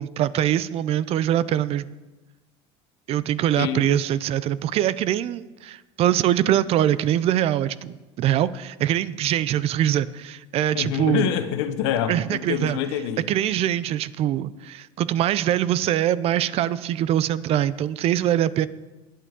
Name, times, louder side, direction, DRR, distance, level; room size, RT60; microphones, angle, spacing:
voice 1, 0.0-1.9 3.1-11.3 12.1-12.8 13.3-18.7, right 11 dB, 45° right, 17 dB, 0.5 m, -23 dB
voice 2, 3.6-4.0 10.7-13.3, left 9 dB, 85° left, 9 dB, 1.1 m, -26 dB
20.5 x 8.4 x 3.7 m, 1.1 s
supercardioid pair, 125°, 14 cm